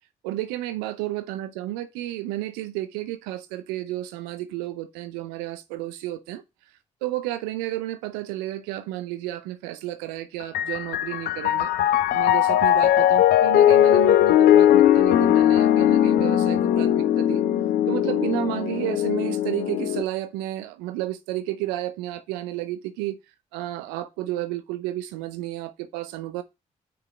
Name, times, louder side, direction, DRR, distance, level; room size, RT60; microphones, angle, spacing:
voice 1, 0.2-6.4 7.0-11.7 12.1-17.4 17.9-23.2 23.5-26.4, right 15 dB, 85° right, 0.5 m, -32 dB
Piano, 10.4-20.0, left 11 dB, 70° left, 0.5 m, -19 dB
5.7 x 4.9 x 5.0 m
hypercardioid pair, 40°, 16 cm